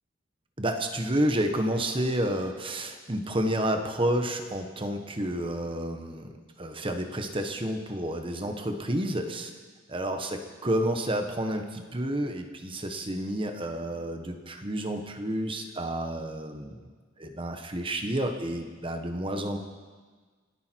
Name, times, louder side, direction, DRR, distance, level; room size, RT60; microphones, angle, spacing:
voice 1, 0.6-9.5 9.9-16.9 17.2-19.6, right 1 dB, 25° right, 5 dB, 1.4 m, -30 dB
29.0 x 10.5 x 4.7 m, 1.4 s
head